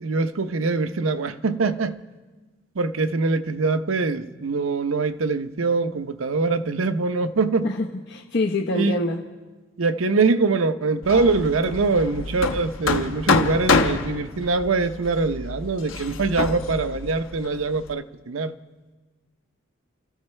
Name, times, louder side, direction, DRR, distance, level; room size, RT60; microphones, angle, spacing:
voice 1, 0.0-2.0 2.8-7.7 8.7-9.0 9.8-18.5, right 3 dB, 80° right, 10 dB, 0.7 m, -23 dB
voice 2, 7.6-9.2, left 2 dB, 55° left, 0 dB, 1.0 m, -25 dB
Hammer, 11.0-17.9, left 3 dB, 80° left, 1.0 m, -26 dB
29.5 x 14.0 x 3.2 m, 1.3 s
head